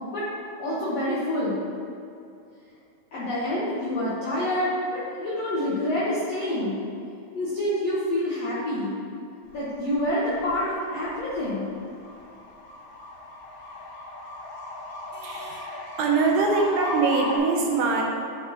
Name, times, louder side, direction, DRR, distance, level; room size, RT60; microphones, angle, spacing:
voice 1, 0.6-1.6 3.1-6.8 7.3-9.0 9.5-11.7, left 1 dB, 85° left, -9 dB, 1.4 m, -27 dB
sound 1, 9.5-17.4, left 2 dB, 70° left, 2.7 m, -37 dB
voice 2, 15.2-18.0, right 4 dB, 80° right, 0 dB, 2.1 m, -23 dB
10.5 x 5.2 x 3.0 m, 2.6 s
omnidirectional pair, 4.7 m